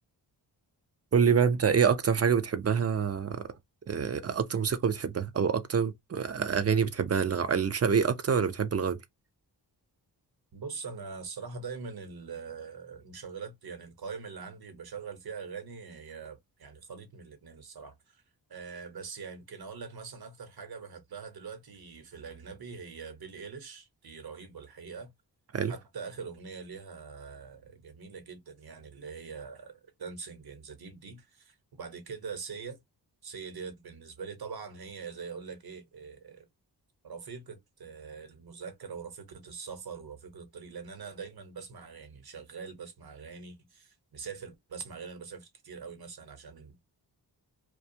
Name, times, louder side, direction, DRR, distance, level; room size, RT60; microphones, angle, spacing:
voice 1, 1.1-3.4 3.9-9.0 25.5-25.7, right 6 dB, 35° right, 0.6 m, -26 dB
voice 2, 10.5-18.2 18.5-25.1 25.7-32.8 33.2-36.5 37.0-46.8, right 5 dB, 60° right, 1.0 m, -43 dB
2.4 x 2.2 x 2.7 m
cardioid pair, 60°, 43 cm